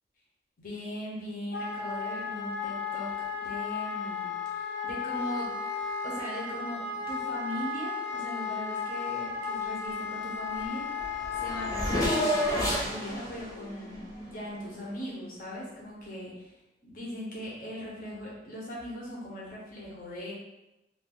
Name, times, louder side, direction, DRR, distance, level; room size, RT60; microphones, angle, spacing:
voice 1, 0.6-3.1 3.4-5.5 6.0-6.8 7.1-16.5 16.8-20.3, left 1 dB, 50° left, -6 dB, 1.0 m, -39 dB
Wind instrument woodwind instrument, 1.5-12.8, left 5 dB, 85° left, 0.6 m, -34 dB
Race car auto racing / Accelerating revving vroom, 10.6-10.7 10.9-14.9, equal, 20° left, 0.8 m, -31 dB
2.7 x 2.7 x 3.7 m, 0.97 s
head